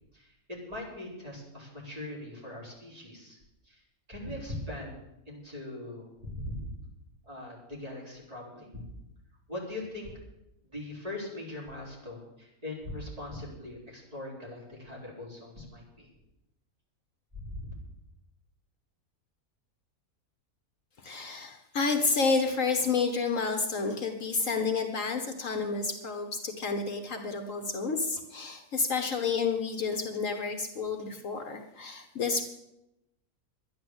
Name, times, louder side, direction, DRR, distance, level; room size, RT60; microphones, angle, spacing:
voice 1, 0.1-3.4 3.6-3.8 4.1-5.0 5.3-6.7 7.2-8.7 9.5-10.1 10.6-16.1 17.3-17.7, left 1 dB, 25° right, -4 dB, 4.2 m, -41 dB
voice 2, 21.0-32.5, left 4 dB, 60° left, 6 dB, 1.4 m, -30 dB
11.5 x 10.5 x 7.9 m, 0.90 s
omnidirectional pair, 1.6 m